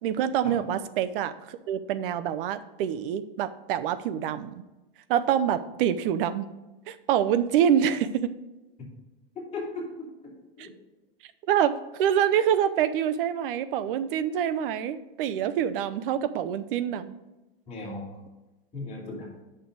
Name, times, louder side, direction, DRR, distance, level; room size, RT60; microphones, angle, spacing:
voice 1, 0.0-4.6 5.1-6.5 6.9-8.4 10.6-10.7 11.5-11.7 12.0-17.1, right 9 dB, 65° right, 12 dB, 0.7 m, -26 dB
voice 2, 9.5-10.7 17.7-18.0 18.7-19.4, left 2 dB, 20° left, -4 dB, 3.1 m, -37 dB
8.5 x 6.5 x 3.9 m, 1.1 s
supercardioid pair, 145°, 30 cm